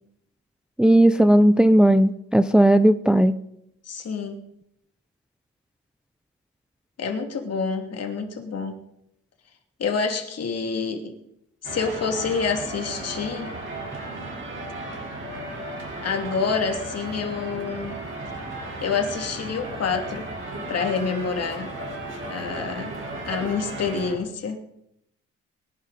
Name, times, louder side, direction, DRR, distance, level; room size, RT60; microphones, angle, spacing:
voice 1, 0.8-3.3, right 1 dB, 5° right, 11 dB, 0.5 m, -16 dB
voice 2, 3.8-4.4 7.0-8.8 9.8-11.1 11.6-13.5 16.0-18.0 18.8-20.3 20.7-21.7 22.3-23.0 23.3-24.6, left 5 dB, 55° left, 4 dB, 2.8 m, -27 dB
sound 1, 11.6-24.2, right 2 dB, 40° right, 4.2 m, -35 dB
22.5 x 11.0 x 4.2 m, 0.78 s
cardioid pair, 90°, 30 cm